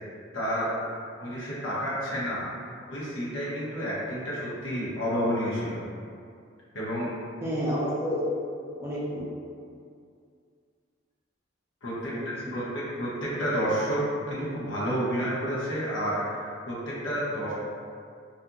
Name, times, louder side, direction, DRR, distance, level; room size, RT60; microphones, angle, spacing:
voice 1, 0.1-0.7 1.2-2.4 2.9-5.8 6.7-7.1 11.8-17.5, equal, 70° left, -8 dB, 0.8 m, -30 dB
voice 2, 7.4-8.3 8.6-9.3 12.0-12.5, equal, 10° right, -8 dB, 0.4 m, -30 dB
2.7 x 2.5 x 2.4 m, 2.3 s
head